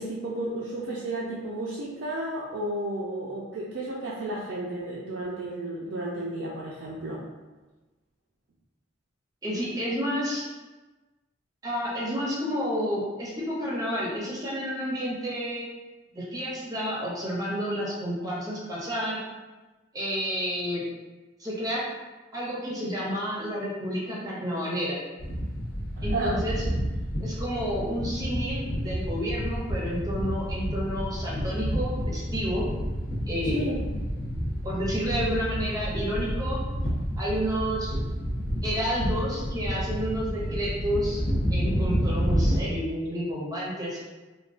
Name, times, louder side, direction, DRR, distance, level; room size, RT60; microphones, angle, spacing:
voice 1, 0.0-7.2 26.0-26.4 33.5-33.8, right 1 dB, 70° right, -5 dB, 0.4 m, -32 dB
voice 2, 9.4-10.5 11.6-15.7 16.1-19.2 19.9-20.8 21.4-21.8 22.3-25.0 26.0-26.6 27.2-32.7 33.3-33.6 34.6-36.6 37.1-38.0 38.6-41.2 41.5-44.0, equal, 20° right, -5 dB, 0.6 m, -30 dB
sound 1, 25.2-42.6, equal, 50° left, 0.6 m, -29 dB
3.5 x 2.2 x 2.4 m, 1.2 s
head